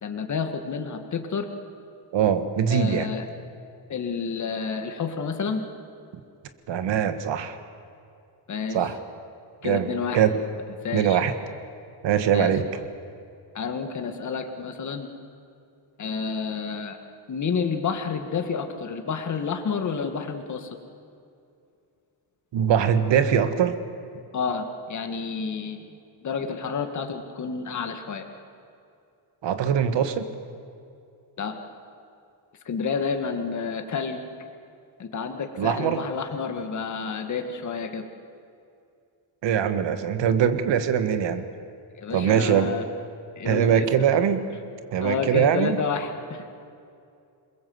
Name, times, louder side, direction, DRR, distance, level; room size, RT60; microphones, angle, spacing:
voice 1, 0.0-1.5 2.7-3.3 3.9-5.6 8.5-8.8 9.6-10.3 10.8-11.2 12.3-12.5 13.5-15.1 16.0-17.0 17.3-20.7 24.3-25.9 26.2-28.2 31.4-31.5 32.7-34.2 35.0-38.1 42.0-42.8 43.4-43.9 45.0-46.5, left 5 dB, 40° left, 6 dB, 1.9 m, -29 dB
voice 2, 2.1-3.1 6.7-7.6 8.7-9.0 9.6-9.9 10.1-10.4 10.9-11.3 12.0-12.8 22.5-23.8 29.4-30.3 35.6-36.0 39.4-41.4 42.1-42.8 43.4-44.4 44.9-45.8, right 8 dB, 80° right, 10 dB, 1.7 m, -22 dB
28.0 x 21.5 x 7.9 m, 2.5 s
wide cardioid pair, 180°, 43 cm